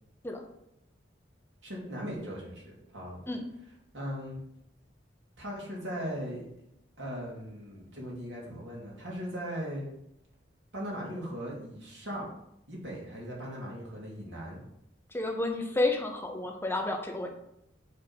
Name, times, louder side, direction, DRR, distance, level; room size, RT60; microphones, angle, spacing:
voice 1, 1.6-3.2 3.9-4.4 5.4-6.5 7.0-9.9 10.7-12.3 12.7-14.6, equal, 90° right, -3 dB, 2.4 m, -38 dB
voice 2, 15.1-17.3, left 2 dB, 15° left, 3 dB, 0.8 m, -30 dB
6.6 x 3.6 x 6.0 m, 0.80 s
head